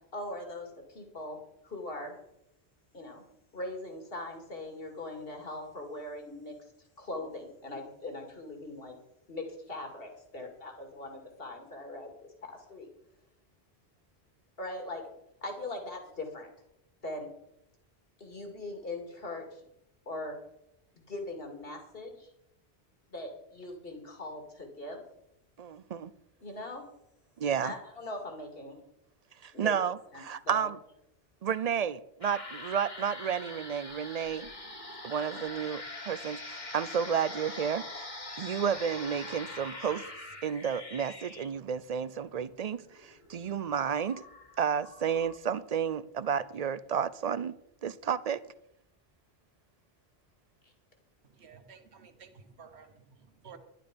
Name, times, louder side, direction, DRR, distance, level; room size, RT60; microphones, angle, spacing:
voice 1, 0.1-2.2 2.9-3.2 3.5-6.5 7.0-8.9 9.3-12.1 12.4-12.9 14.6-15.0 15.4-16.5 17.0-17.3 18.2-19.6 20.1-20.4 21.1-22.3 23.1-25.0 26.4-26.8 27.6-28.8 29.5-29.7 30.1-30.7 50.6-50.7, left 2 dB, 65° left, 2.6 m, -40 dB
voice 2, 25.6-26.1 27.4-27.7 29.4-30.8 31.4-34.5 35.0-38.0 38.4-40.0 40.4-44.2 44.6-47.6 47.8-48.4, right 7 dB, 50° right, 0.5 m, -31 dB
sound 1, 32.2-45.4, left 2 dB, 45° left, 1.9 m, -44 dB
voice 3, 51.2-53.6, right 6 dB, 80° right, 1.4 m, -53 dB
12.0 x 11.5 x 5.2 m
omnidirectional pair, 1.1 m